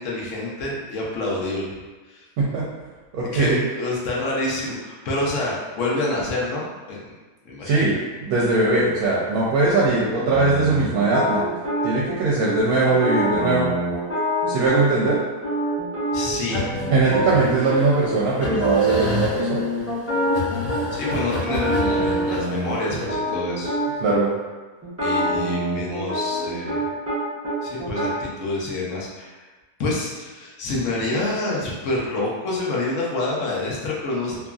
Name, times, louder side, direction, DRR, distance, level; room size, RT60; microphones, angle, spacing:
voice 1, 0.0-1.8 2.1-2.3 3.3-7.0 7.5-7.9 16.1-16.7 20.9-23.7 25.0-26.8 27.6-29.4 29.8-34.4, left 2 dB, 60° left, -4 dB, 0.9 m, -27 dB
voice 2, 3.1-3.6 7.6-8.0 8.2-11.5 11.8-13.7 14.5-15.2 16.9-19.7 24.0-24.3, right 3 dB, 75° right, -6 dB, 1.0 m, -20 dB
sound 1, 10.0-12.2 12.4-12.5 12.9-15.1 15.4-17.8 18.1-18.2 18.4-19.1 19.4-21.2 21.5-24.2 24.8-27.2 27.4-28.1, right 1 dB, 20° right, 0.4 m, -25 dB
sound 2, 16.5-23.1, left 2 dB, 90° left, 1.1 m, -30 dB
2.9 x 2.5 x 2.3 m, 1.3 s
omnidirectional pair, 1.6 m